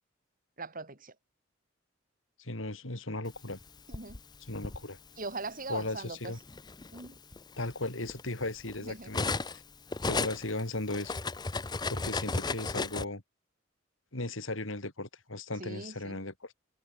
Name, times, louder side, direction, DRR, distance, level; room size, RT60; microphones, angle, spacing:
voice 1, 0.6-1.1 3.9-4.2 5.2-6.3 6.9-7.2 8.8-9.1 15.6-16.2, right 3 dB, 45° right, 4.1 m, -41 dB
voice 2, 2.4-3.6 4.5-5.0 5.7-6.4 7.6-9.6 10.0-11.1 11.9-13.2 14.1-16.5, left 2 dB, 80° left, 4.0 m, -36 dB
Cutlery silverware, 3.5-4.8 5.8-6.0 6.4-9.6 9.9-13.0, left 3 dB, 20° left, 0.7 m, -35 dB
head